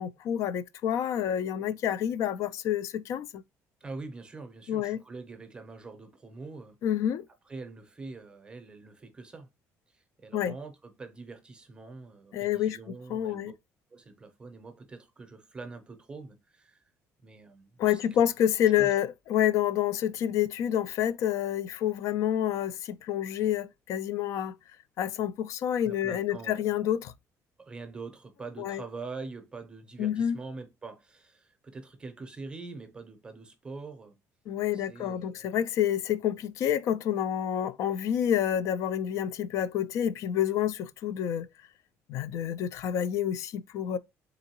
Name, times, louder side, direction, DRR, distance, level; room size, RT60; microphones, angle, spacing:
voice 1, 0.0-3.4 4.7-5.0 6.8-7.2 10.3-10.5 12.3-12.8 13.1-13.5 17.8-24.5 25.0-27.1 28.6-28.8 30.0-30.4 34.5-41.5 42.1-44.0, left 10 dB, 55° left, 0.3 m, -28 dB
voice 2, 3.8-6.8 7.4-9.5 9.9-13.5 13.9-16.9 17.2-18.2 18.8-18.9 25.8-26.7 27.6-34.1 34.7-35.5, right 3 dB, 15° right, 0.6 m, -44 dB
3.8 x 3.5 x 2.8 m
cardioid pair, 170°, 6 cm